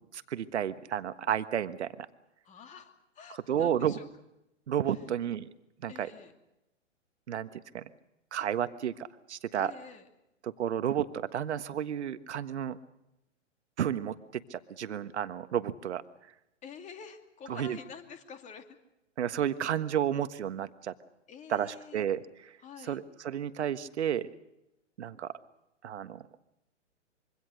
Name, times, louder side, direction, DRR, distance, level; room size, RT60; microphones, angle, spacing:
voice 1, 0.1-2.1 3.5-4.0 4.7-5.5 5.8-6.1 7.3-7.5 7.7-7.8 8.3-9.7 10.4-12.8 13.8-16.0 17.5-17.8 19.2-20.9 21.5-22.5 22.9-24.3 25.0-25.3 25.8-26.3, right 9 dB, 65° right, 12 dB, 1.5 m, -32 dB
voice 2, 2.4-4.1 4.9-5.0 5.9-6.3 9.6-10.1 16.6-18.7 21.3-22.1 22.6-23.0, left 6 dB, 20° left, 6 dB, 2.6 m, -48 dB
25.5 x 24.0 x 6.5 m, 0.91 s
hypercardioid pair, 125°, 37 cm